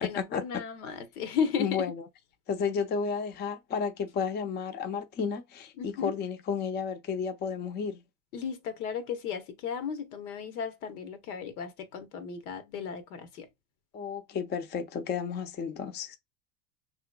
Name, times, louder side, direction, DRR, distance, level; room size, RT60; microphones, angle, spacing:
voice 1, 0.0-1.9 5.8-6.1 8.3-13.5, left 7 dB, 75° left, 1.1 m, -34 dB
voice 2, 1.6-1.9 2.5-8.0 13.9-16.2, left 6 dB, 25° left, 0.5 m, -32 dB
5.6 x 3.0 x 2.2 m
hypercardioid pair, 95°, 44 cm